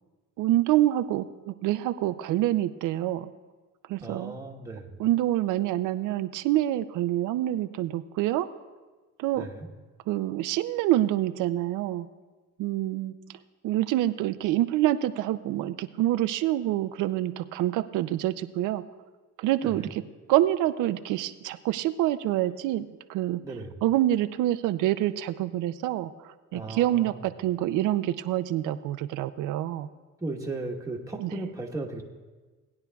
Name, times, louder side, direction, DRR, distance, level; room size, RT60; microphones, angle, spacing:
voice 1, 0.4-3.3 3.9-4.3 5.0-8.5 9.2-9.5 10.1-12.1 12.6-13.1 13.6-18.8 19.4-20.0 20.3-22.8 23.1-23.4 23.8-29.9 31.2-31.3, right 14 dB, 90° right, 11 dB, 0.5 m, -26 dB
voice 2, 4.0-5.0 9.3-9.7 19.6-19.9 23.4-23.8 26.5-27.2 30.2-32.0, right 2 dB, 10° right, 0 dB, 1.2 m, -36 dB
18.5 x 9.6 x 2.3 m, 1.3 s
cardioid pair, 90°, 30 cm